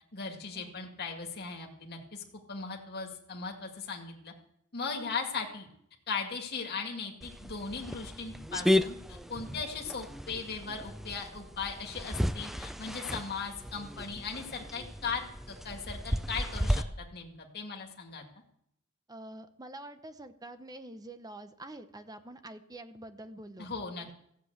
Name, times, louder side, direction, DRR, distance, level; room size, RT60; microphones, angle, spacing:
voice 1, 0.1-2.2 2.5-4.3 4.7-5.7 6.1-18.3 23.6-24.2, left 5 dB, 50° left, 1 dB, 2.0 m, -38 dB
sound 1, 7.2-16.8, left 1 dB, ahead, 0.4 m, -34 dB
voice 2, 19.1-24.1, right 1 dB, 15° right, 9 dB, 0.8 m, -47 dB
15.0 x 7.8 x 8.0 m, 0.72 s
head